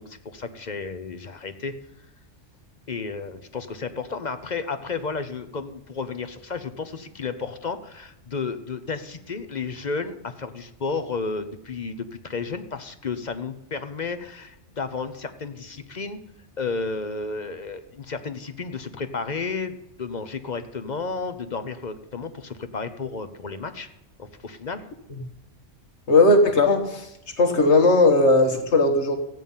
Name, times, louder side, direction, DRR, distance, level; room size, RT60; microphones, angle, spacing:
voice 1, 0.0-1.7 2.9-16.2 16.6-23.9 24.2-24.9, left 4 dB, 40° left, 10 dB, 0.8 m, -32 dB
voice 2, 26.1-27.1 27.4-29.2, left 2 dB, 65° left, 5 dB, 1.7 m, -17 dB
14.5 x 9.2 x 5.5 m, 0.84 s
omnidirectional pair, 1.3 m